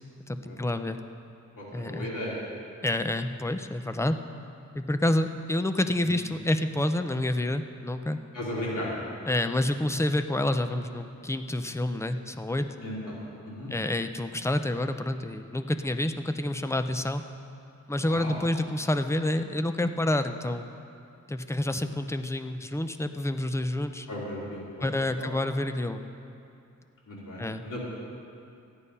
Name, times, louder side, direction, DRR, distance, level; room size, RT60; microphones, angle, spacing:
voice 1, 0.3-1.0 1.7-2.1 2.8-4.2 4.7-8.2 9.3-12.7 13.7-17.2 17.9-20.6 21.3-24.1 24.8-26.0 27.4-27.6, left 1 dB, 10° left, 8 dB, 0.4 m, -28 dB
voice 2, 1.6-2.3 6.0-6.1 8.3-8.9 12.8-13.2 13.4-13.7 18.0-18.3 24.1-24.9 25.2-25.3 27.1-27.8, left 1 dB, 85° left, -6 dB, 3.3 m, -36 dB
13.5 x 9.8 x 5.4 m, 2.6 s
wide cardioid pair, 135°, 31 cm